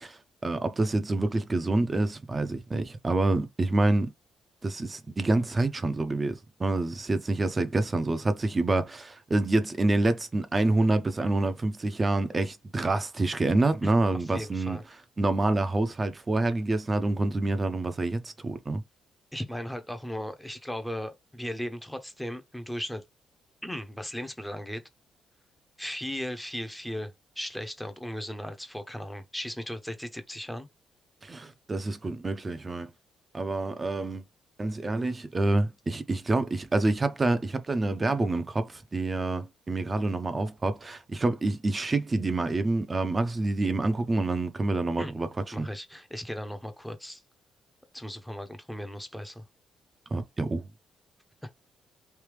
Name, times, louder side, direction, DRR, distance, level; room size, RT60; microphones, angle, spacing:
voice 1, 0.0-4.1 4.6-14.8 15.2-18.8 31.2-32.9 33.3-34.3 34.6-45.3 45.6-45.7 50.1-50.7, right 2 dB, 25° right, 0.7 m, -27 dB
voice 2, 14.2-14.8 19.3-23.0 23.6-24.8 25.8-30.7 45.0-45.1 45.5-47.2 47.9-49.4 51.4-51.5, equal, 5° left, 0.8 m, -37 dB
3.4 x 2.7 x 3.2 m
cardioid pair, 90°, 0 cm